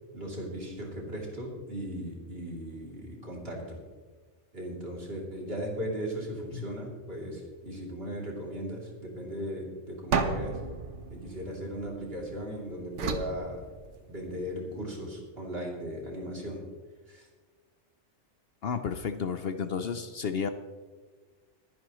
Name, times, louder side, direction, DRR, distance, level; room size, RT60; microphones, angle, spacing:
voice 1, 0.1-3.8 4.5-10.6 11.1-13.6 14.1-16.6 17.1-17.3, equal, 50° right, -2 dB, 3.4 m, -37 dB
sound 1, 10.1-12.3 13.0-14.4, right 5 dB, 70° right, 1.3 m, -33 dB
voice 2, 18.6-20.5, left 6 dB, 60° left, 9 dB, 0.9 m, -32 dB
22.5 x 10.5 x 3.1 m, 1.4 s
omnidirectional pair, 1.3 m